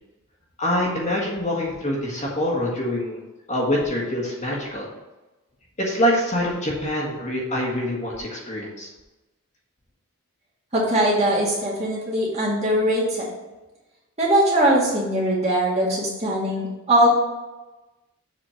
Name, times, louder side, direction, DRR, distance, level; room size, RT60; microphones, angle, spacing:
voice 1, 0.6-3.2 3.5-4.8 5.8-8.9, equal, 30° left, -4 dB, 1.6 m, -25 dB
voice 2, 10.7-13.3 14.2-17.1, right 1 dB, 30° right, -6 dB, 2.3 m, -21 dB
7.4 x 4.3 x 5.6 m, 1.1 s
head